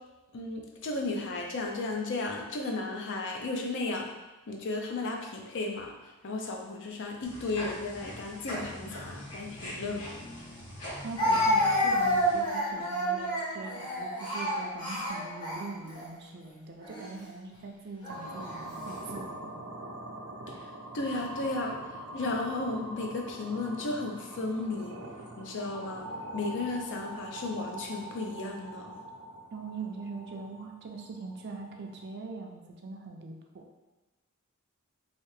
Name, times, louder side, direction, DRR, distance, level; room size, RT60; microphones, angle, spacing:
voice 1, 0.3-4.1 4.5-5.9 6.2-10.1 20.5-21.9 22.1-25.0 25.4-26.1 26.3-28.9, left 2 dB, 55° left, 2 dB, 0.5 m, -34 dB
sound 1, 7.2-12.4, left 1 dB, 90° left, 1.2 m, -42 dB
Speech, 10.0-10.1 11.2-16.1 16.8-17.1 18.0-18.6, equal, 20° left, 0.8 m, -29 dB
voice 2, 11.0-19.6 29.5-33.6, right 3 dB, 50° right, 2 dB, 0.4 m, -42 dB
sound 2, 18.1-32.1, right 1 dB, 85° right, 0.6 m, -43 dB
3.2 x 2.8 x 3.1 m, 1.1 s
head